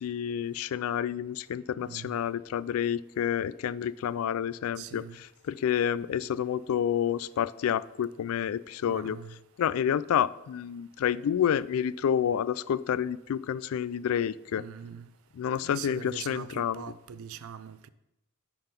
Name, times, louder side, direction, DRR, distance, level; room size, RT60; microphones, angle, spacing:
voice 1, 0.0-9.2 9.6-14.6 15.4-16.8, left 9 dB, 75° left, 0.3 m, -29 dB
voice 2, 1.8-2.2 4.8-5.2 8.8-9.4 14.5-15.1 15.6-17.9, right 8 dB, 75° right, 0.4 m, -43 dB
9.8 x 3.9 x 5.2 m
head